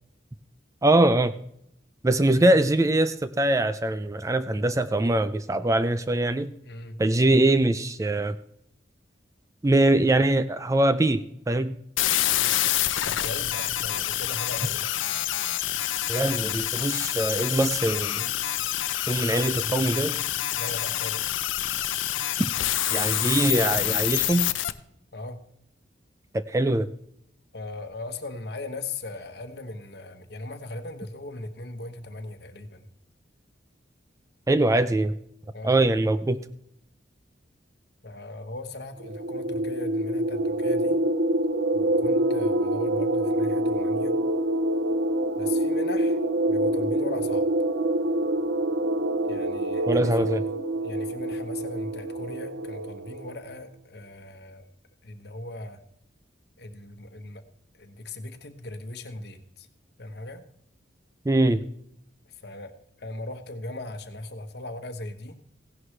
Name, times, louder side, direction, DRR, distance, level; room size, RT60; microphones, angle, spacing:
voice 1, 0.8-1.4 2.0-6.5 7.0-8.4 9.6-11.8 16.1-18.3 19.1-20.2 22.9-24.5 26.3-26.9 34.5-35.1 35.6-36.4 49.9-50.4 61.3-61.6, right 1 dB, 15° right, 12 dB, 0.4 m, -22 dB
voice 2, 6.6-7.0 13.0-14.9 20.5-21.4 25.1-25.4 27.5-32.9 35.5-35.8 38.0-41.0 41.7-44.1 45.4-46.2 46.5-47.5 49.3-50.3 50.8-54.6 55.0-55.8 56.6-57.4 57.8-59.7 60.0-60.4 62.3-62.7 63.0-65.4, left 2 dB, 55° left, 8 dB, 1.1 m, -38 dB
sound 1, 12.0-24.7, left 13 dB, 85° left, 0.6 m, -27 dB
sound 2, 39.0-53.4, right 1 dB, 75° right, 0.6 m, -26 dB
16.0 x 11.0 x 3.3 m, 0.73 s
head